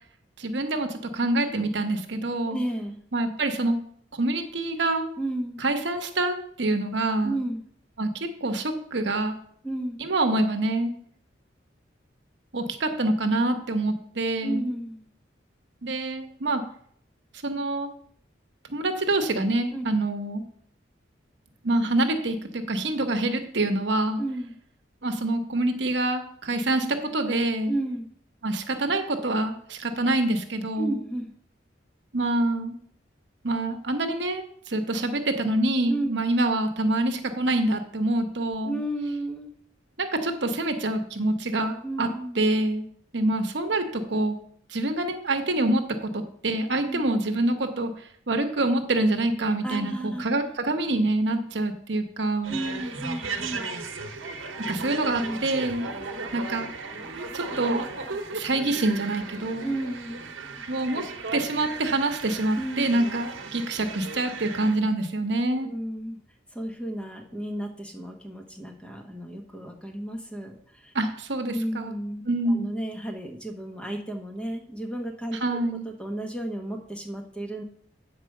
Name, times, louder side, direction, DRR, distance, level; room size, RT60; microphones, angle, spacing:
voice 1, 0.4-2.6 3.1-3.8 4.1-5.1 5.6-7.4 8.0-9.3 10.0-10.9 12.5-14.6 15.8-16.6 17.4-17.9 18.7-20.4 21.6-24.2 25.0-27.7 28.4-31.0 32.1-32.7 33.4-38.8 40.0-42.1 42.4-42.8 43.1-44.4 44.7-47.9 48.3-52.6 54.7-55.9 56.3-56.7 57.3-57.8 58.3-59.7 60.7-61.0 61.3-65.7 70.9-71.9 72.3-72.7 75.4-75.8, right 2 dB, 65° right, 6 dB, 1.0 m, -26 dB
voice 2, 2.5-3.0 5.2-5.6 7.2-7.6 9.6-10.0 14.4-15.1 19.7-19.8 24.2-24.6 27.7-28.1 30.8-31.3 35.8-36.2 38.6-39.5 41.8-42.4 46.8-47.0 49.6-50.5 52.5-53.7 55.2-55.4 59.6-60.3 62.6-63.1 65.5-66.2 66.5-70.9 71.5-77.6, right 1 dB, 5° left, 2 dB, 1.1 m, -33 dB
sound 1, 52.4-64.7, right 4 dB, 85° right, 1.0 m, -36 dB
8.6 x 4.7 x 6.5 m, 0.63 s
head